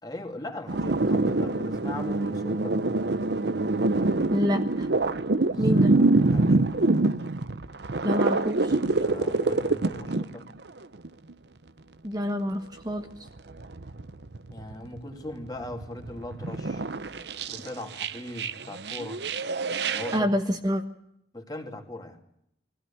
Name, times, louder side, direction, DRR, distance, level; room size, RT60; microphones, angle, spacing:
voice 1, 0.0-2.8 5.4-7.1 8.9-10.5 14.5-16.8 17.5-19.2 19.9-20.3 21.3-22.2, left 1 dB, 20° left, 3 dB, 2.8 m, -39 dB
sound 1, 0.7-10.3 10.7-11.3 13.3-15.0 15.3-20.2, right 2 dB, 65° right, 0.8 m, -25 dB
voice 2, 4.3-4.9 5.6-5.9 8.0-8.8 12.0-13.1 20.1-20.8, equal, 20° right, 4 dB, 1.2 m, -27 dB
23.5 x 16.0 x 8.6 m, 0.76 s
head